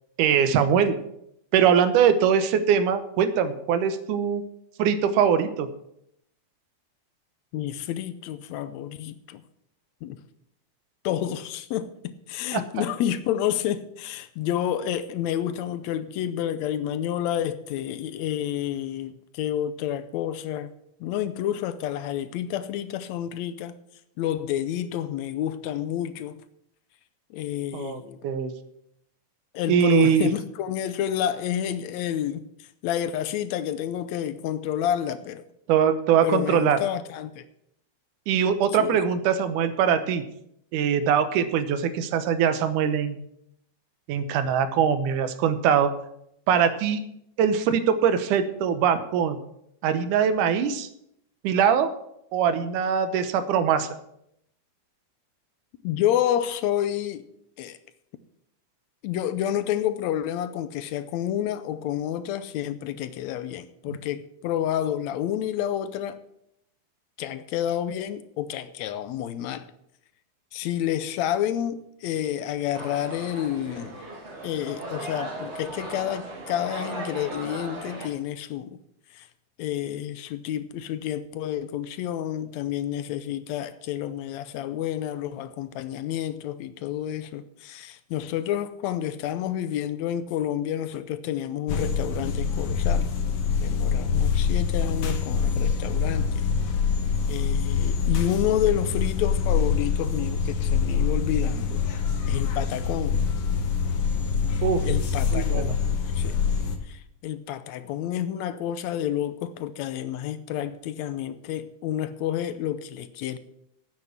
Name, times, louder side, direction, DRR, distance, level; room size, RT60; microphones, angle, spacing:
voice 1, 0.2-1.0 1.5-4.4 4.8-5.7 12.5-12.8 27.7-28.5 29.7-30.3 35.7-36.8 38.3-40.2 40.7-43.2 44.1-45.9 46.5-47.0 47.4-49.4 49.8-50.9 51.4-51.9 52.3-53.9 63.9-64.0 104.6-104.9 105.3-105.7, right 8 dB, 85° right, 2.4 m, -22 dB
voice 2, 7.5-9.4 10.0-10.2 11.0-20.7 21.0-23.8 24.2-26.4 27.3-28.2 29.5-35.4 36.2-37.4 38.8-39.0 55.8-57.3 57.6-57.8 59.0-66.2 67.2-69.7 70.5-73.9 74.4-78.8 79.1-79.3 79.6-93.1 93.6-96.5 97.3-101.8 102.3-103.2 104.5-106.4 106.9-113.4, left 11 dB, 75° left, 1.8 m, -29 dB
sound 1, 72.7-78.1, right 2 dB, 25° right, 1.7 m, -37 dB
sound 2, 91.7-106.8, left 6 dB, 60° left, 1.9 m, -25 dB
9.3 x 8.1 x 7.1 m
omnidirectional pair, 3.5 m